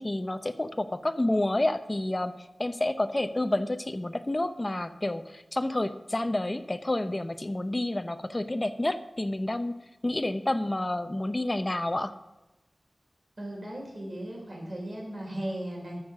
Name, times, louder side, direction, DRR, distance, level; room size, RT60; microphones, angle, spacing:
voice 1, 0.0-2.3 2.6-12.1, left 1 dB, 30° left, 9 dB, 0.7 m, -29 dB
voice 2, 13.4-16.1, right 1 dB, 55° right, -1 dB, 4.2 m, -36 dB
13.0 x 6.5 x 6.0 m, 1.0 s
wide cardioid pair, 80°, 0 cm